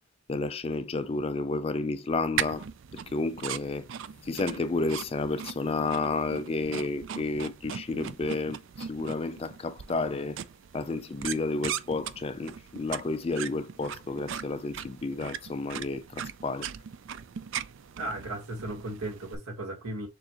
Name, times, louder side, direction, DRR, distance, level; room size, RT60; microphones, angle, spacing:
voice 1, 0.3-2.7 3.1-3.9 4.2-10.4 10.7-16.7, left 3 dB, 25° left, 0.3 m, -31 dB
sound 1, 2.4-19.4, right 8 dB, 55° right, 0.4 m, -39 dB
voice 2, 18.0-20.1, right 1 dB, 85° right, 1.6 m, -36 dB
6.8 x 2.5 x 3.0 m
head